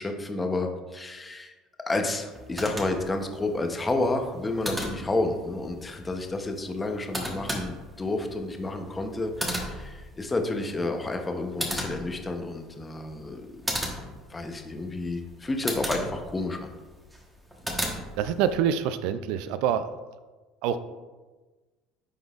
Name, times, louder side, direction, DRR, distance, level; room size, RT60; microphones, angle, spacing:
voice 1, 0.0-1.5 1.9-13.5 14.3-16.7, left 2 dB, 20° left, 5 dB, 0.8 m, -30 dB
sound 1, 2.3-18.6, equal, 10° right, 1.2 m, -37 dB
voice 2, 18.2-19.9 20.6-20.8, right 9 dB, 75° right, 12 dB, 0.3 m, -26 dB
10.0 x 3.9 x 2.4 m, 1.2 s
supercardioid pair, 105°, 0 cm